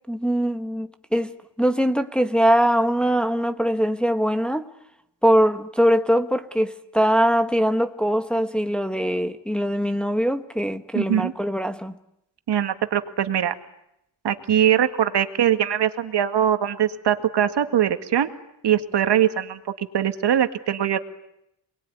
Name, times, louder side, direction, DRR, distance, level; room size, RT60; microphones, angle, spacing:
voice 1, 0.1-1.3 1.6-4.7 5.2-11.9, equal, ahead, 1.3 m, -22 dB
voice 2, 10.9-11.3 12.5-13.5 14.2-18.3 18.6-21.0, right 10 dB, 65° right, 2.0 m, -22 dB
28.0 x 21.0 x 9.5 m
wide cardioid pair, 140°, 44 cm